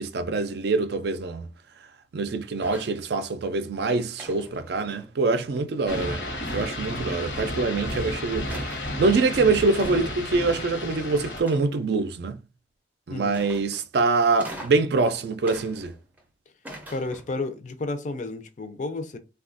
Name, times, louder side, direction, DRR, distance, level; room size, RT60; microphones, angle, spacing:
voice 1, 0.0-1.5 2.1-6.2 6.5-12.4 13.1-15.9, right 3 dB, 65° right, 0.4 m, -25 dB
sound 1, 2.6-3.0 4.2-5.3 6.4-7.0 7.9-8.0 8.5-8.9 9.8-10.2 11.4-12.0 13.3-13.9 14.4-14.9 15.4-16.2 16.6-17.4, right 1 dB, 10° right, 0.5 m, -43 dB
sound 2, 5.9-11.4, left 1 dB, 80° left, 0.9 m, -32 dB
voice 2, 16.9-19.2, left 2 dB, 45° left, 0.4 m, -32 dB
3.4 x 2.3 x 2.4 m
head